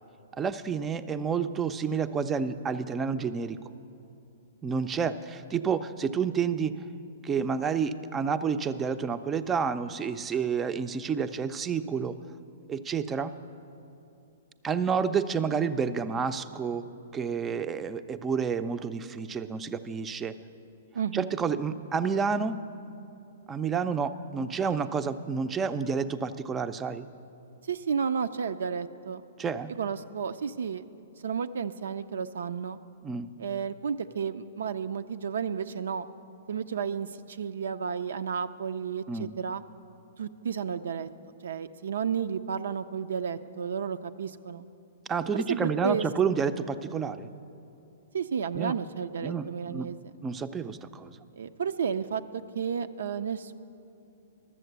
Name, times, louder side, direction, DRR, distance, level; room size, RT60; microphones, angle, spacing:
voice 1, 0.4-3.6 4.6-6.7 7.2-12.2 12.7-13.4 14.6-16.8 17.1-20.3 21.1-22.6 23.5-27.1 29.4-29.7 33.0-33.3 39.1-39.3 45.1-47.3 48.5-48.7 49.2-49.9 50.2-51.2, right 6 dB, 15° right, 11 dB, 0.4 m, -29 dB
voice 2, 20.9-21.3 27.7-29.2 29.8-30.8 31.2-32.8 33.4-36.1 36.5-39.6 40.2-41.1 41.4-44.6 45.3-46.1 48.1-50.0 51.3-52.2 52.5-53.5, right 6 dB, 80° right, 9 dB, 0.4 m, -32 dB
12.5 x 7.5 x 8.0 m, 2.7 s
hypercardioid pair, 140°, 0 cm